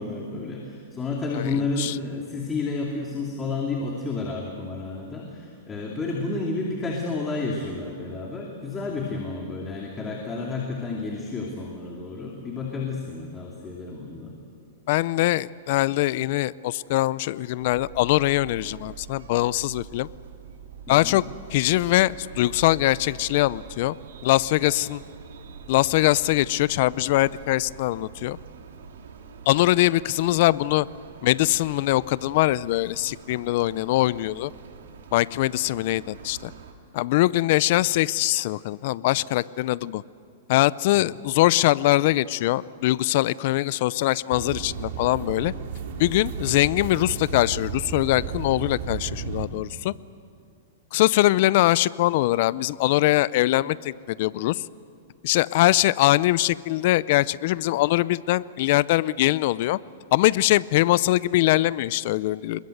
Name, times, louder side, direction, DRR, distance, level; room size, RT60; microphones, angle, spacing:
voice 1, 0.0-14.3 20.9-21.2 40.9-41.2, left 3 dB, 15° left, -1 dB, 2.7 m, -31 dB
voice 2, 1.3-1.9 14.9-20.1 20.9-21.2 21.5-24.0 24.2-25.0 25.7-28.4 29.5-30.9 31.2-34.5 35.1-36.5 36.9-40.0 40.5-45.5 46.0-49.9 50.9-54.6 55.2-59.8 60.1-62.7, left 17 dB, 50° left, 20 dB, 0.5 m, -22 dB
sound 1, 17.6-36.7, right 6 dB, 80° right, 2.9 m, -44 dB
sound 2, 44.3-49.5, right 7 dB, 60° right, 2.9 m, -33 dB
26.5 x 21.5 x 8.0 m, 2.4 s
hypercardioid pair, 150°, 0 cm